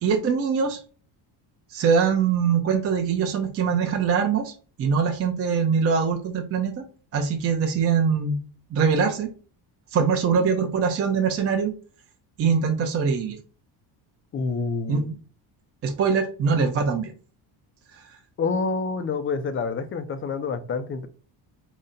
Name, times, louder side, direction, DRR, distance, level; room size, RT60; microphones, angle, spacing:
voice 1, 0.0-0.8 1.7-4.5 4.8-6.9 7.1-8.4 8.7-9.3 9.9-11.7 12.4-13.4 14.9-15.1 15.8-17.1 17.9-18.0, right 6 dB, 35° right, 2 dB, 0.5 m, -23 dB
voice 2, 14.3-15.1 18.4-21.1, left 4 dB, 30° left, 10 dB, 0.4 m, -27 dB
4.0 x 2.1 x 3.7 m, 0.37 s
cardioid pair, 130°, 46 cm